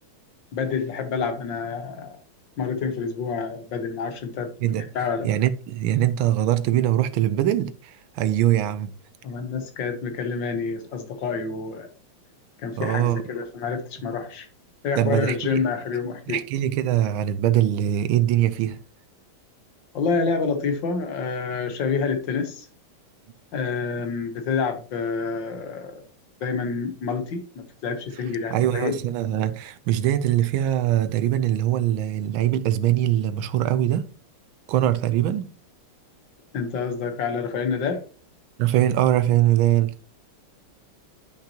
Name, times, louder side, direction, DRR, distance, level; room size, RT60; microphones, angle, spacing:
voice 1, 0.5-2.2 2.6-4.5 4.9-5.3 9.2-11.9 12.6-14.5 14.8-16.4 19.9-22.7 23.5-26.0 26.4-29.0 36.5-38.0, left 5 dB, 60° left, 1.7 m, -28 dB
voice 2, 5.2-8.9 12.8-13.2 15.0-15.6 16.3-18.8 28.5-34.1 34.7-35.5 38.6-39.9, right 12 dB, 75° right, 1.3 m, -22 dB
10.5 x 5.8 x 2.8 m
omnidirectional pair, 2.4 m